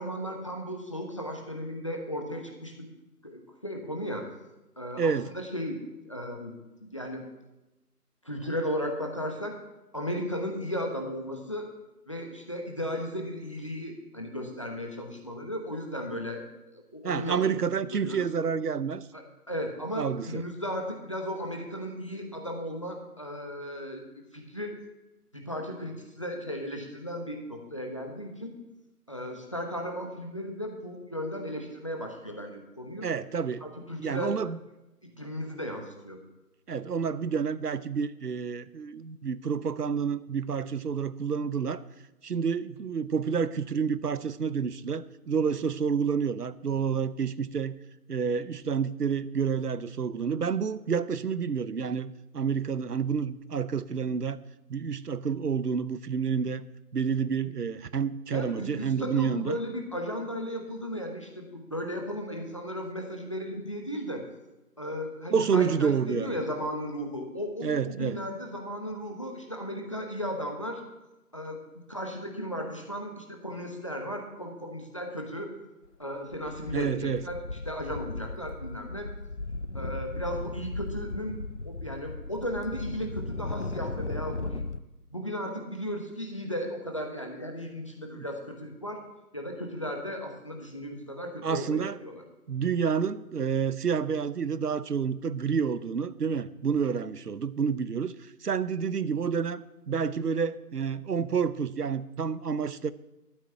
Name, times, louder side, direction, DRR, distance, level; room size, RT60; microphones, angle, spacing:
voice 1, 0.0-2.9 3.2-4.3 4.8-5.8 6.0-6.5 6.8-7.2 8.2-9.6 9.9-11.7 12.1-17.4 17.9-18.3 19.1-19.2 19.5-24.0 24.3-24.7 25.3-28.5 29.1-33.1 33.6-34.4 35.0-36.2 58.3-64.3 64.8-70.8 71.3-71.6 71.9-75.5 76.0-77.4 77.7-79.1 79.7-81.4 81.6-84.6 85.1-89.0 89.3-92.2, equal, 20° left, 2 dB, 1.0 m, -35 dB
voice 2, 5.0-5.3 17.0-19.0 20.0-20.4 33.0-33.7 34.0-34.6 36.7-41.8 42.2-47.7 48.1-54.4 54.7-56.6 56.9-59.6 65.3-66.4 67.6-68.2 76.7-77.2 88.1-88.2 91.4-92.0 92.5-98.1 98.4-99.6 99.9-102.9, right 6 dB, 75° right, 16 dB, 0.9 m, -29 dB
sound 1, 75.9-76.0 76.3-84.8, left 3 dB, 50° left, 0.5 m, -36 dB
13.0 x 6.0 x 8.1 m, 1.0 s
figure-of-eight pair, 165°, 48 cm